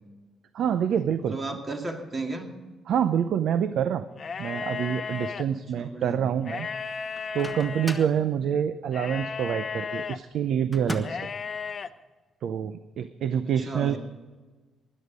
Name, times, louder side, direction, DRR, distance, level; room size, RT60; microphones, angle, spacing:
voice 1, 0.5-1.4 2.9-4.1 4.4-6.7 7.0-11.2 12.4-14.0, right 8 dB, 70° right, 12 dB, 0.6 m, -27 dB
voice 2, 1.2-2.5 5.8-6.2 13.4-14.0, right 2 dB, 30° right, 3 dB, 2.4 m, -34 dB
sound 1, 4.1-5.4 6.4-8.1 8.9-10.2 11.0-11.9, left 5 dB, 45° left, 0.7 m, -34 dB
Microwave oven, 7.1-8.2 10.7-11.3, equal, 10° right, 1.6 m, -37 dB
16.5 x 11.5 x 5.1 m, 1.3 s
cardioid pair, 90°, 0 cm